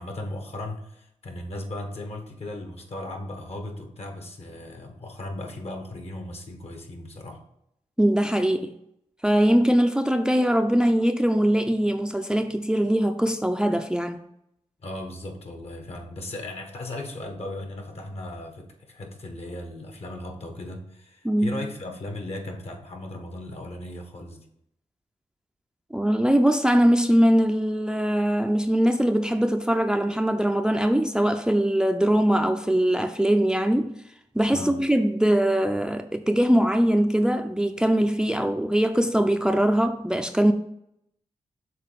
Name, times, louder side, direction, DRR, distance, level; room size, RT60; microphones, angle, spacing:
voice 1, 0.0-7.4 14.8-24.4 34.5-34.8, left 1 dB, 55° left, 1.5 m, -37 dB
voice 2, 8.0-8.7 9.2-14.2 21.2-21.6 25.9-34.0 34.3-40.5, equal, 5° right, 0.5 m, -22 dB
6.8 x 3.8 x 5.2 m
supercardioid pair, 45°, 12 cm